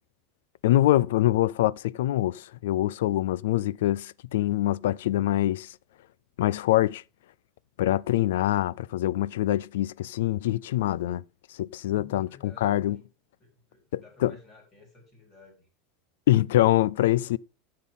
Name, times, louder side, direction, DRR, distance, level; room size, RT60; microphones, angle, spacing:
voice 1, 0.6-5.7 6.4-7.0 7.8-11.2 11.6-13.0 13.9-14.3 16.3-17.4, left 14 dB, 85° left, 0.4 m, -24 dB
voice 2, 11.8-13.0 13.4-15.7, left 3 dB, 20° left, 4.0 m, -53 dB
12.5 x 7.6 x 3.7 m
supercardioid pair, 170°, 0 cm